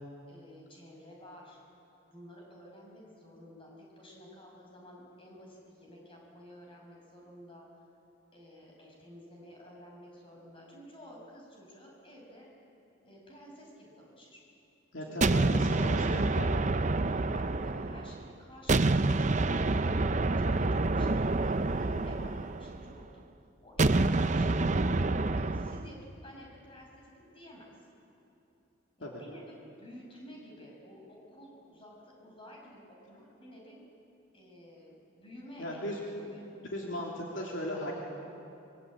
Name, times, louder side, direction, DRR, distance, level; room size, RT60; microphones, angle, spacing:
voice 1, 0.3-1.6 2.0-7.7 8.3-12.5 13.0-14.4 15.0-16.1 17.3-19.1 19.5-23.2 23.6-24.8 25.3-27.7 29.0-33.8 34.3-35.9 36.3-36.4 36.8-37.0, equal, 25° left, -2 dB, 6.3 m, -52 dB
voice 2, 14.9-16.5 29.0-29.2 35.6-36.0 36.7-37.9, left 1 dB, 60° left, -2 dB, 3.0 m, -37 dB
sound 1, 15.2-18.2 18.7-22.9 23.8-25.9, right 2 dB, 35° right, 0.6 m, -27 dB
25.5 x 23.5 x 8.8 m, 2.8 s
head